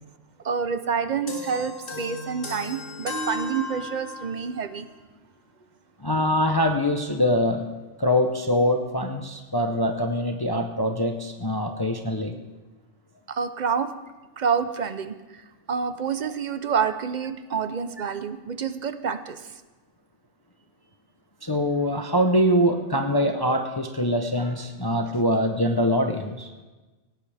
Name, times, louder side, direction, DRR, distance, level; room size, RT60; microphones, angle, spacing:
voice 1, 0.4-4.9 13.3-13.9 14.4-19.5, right 6 dB, 45° right, 11 dB, 0.7 m, -28 dB
sound 1, 1.3-4.5, left 2 dB, 45° left, 2.6 m, -35 dB
voice 2, 6.0-7.7 8.0-12.4 21.4-26.5, equal, 20° left, 4 dB, 0.7 m, -23 dB
18.0 x 18.0 x 3.4 m, 1.2 s
omnidirectional pair, 1.3 m